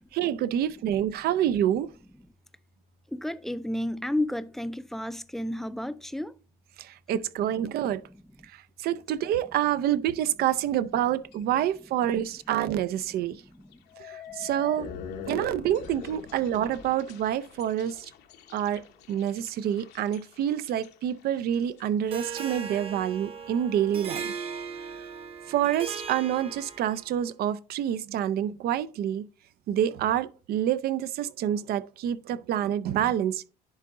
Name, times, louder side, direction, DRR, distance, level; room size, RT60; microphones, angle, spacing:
voice 1, 0.0-1.9 6.8-8.0 8.4-13.4 14.0-14.9 15.3-18.1 18.5-24.3 25.5-29.3 29.7-33.5, right 10 dB, 65° right, 0.5 m, -27 dB
voice 2, 3.1-6.3 8.0-8.2 13.4-13.8 14.3-14.5, left 1 dB, ahead, 0.4 m, -32 dB
sound 1, 11.3-11.6 12.0-12.4 12.8-12.9 13.7-22.8, left 7 dB, 80° left, 1.0 m, -44 dB
Harp, 22.1-27.1, right 5 dB, 35° right, 0.9 m, -38 dB
10.5 x 3.8 x 3.6 m
cardioid pair, 110°, 17 cm